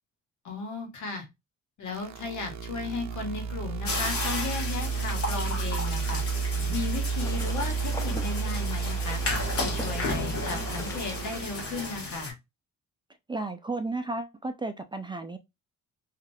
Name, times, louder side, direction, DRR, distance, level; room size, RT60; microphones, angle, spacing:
voice 1, 0.4-1.3 1.8-6.2 6.7-9.2 9.6-12.3, left 4 dB, 70° left, 1.2 m, -35 dB
sound 1, 1.9-11.9, right 5 dB, 65° right, 0.6 m, -32 dB
sound 2, 3.8-12.3, left 3 dB, 50° left, 1.3 m, -34 dB
sound 3, 7.1-12.1, left 1 dB, 10° left, 0.7 m, -42 dB
voice 2, 13.3-15.4, right 2 dB, 15° right, 0.4 m, -33 dB
2.9 x 2.4 x 2.6 m
cardioid pair, 90°, 30 cm